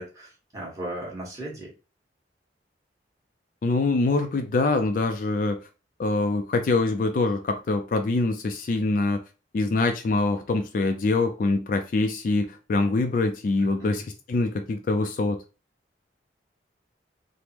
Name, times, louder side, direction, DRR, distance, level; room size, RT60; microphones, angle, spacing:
voice 1, 0.0-1.7 13.6-14.0, right 1 dB, 20° right, 1.1 m, -37 dB
voice 2, 3.6-5.6 6.0-9.2 9.5-14.0 14.3-15.4, left 3 dB, 45° left, 0.3 m, -24 dB
3.4 x 2.0 x 2.8 m
head